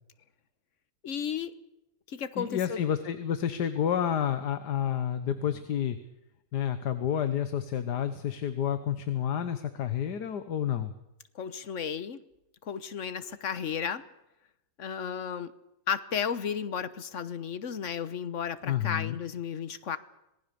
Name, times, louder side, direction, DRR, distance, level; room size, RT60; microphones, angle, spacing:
voice 1, 1.0-1.5 2.1-2.8 11.3-12.2 12.6-14.0 14.8-15.5 15.9-20.0, left 7 dB, 50° left, 14 dB, 1.3 m, -33 dB
voice 2, 2.3-6.0 6.5-10.9 18.6-19.2, left 9 dB, 85° left, 11 dB, 1.7 m, -30 dB
26.0 x 19.0 x 6.9 m, 0.89 s
omnidirectional pair, 1.7 m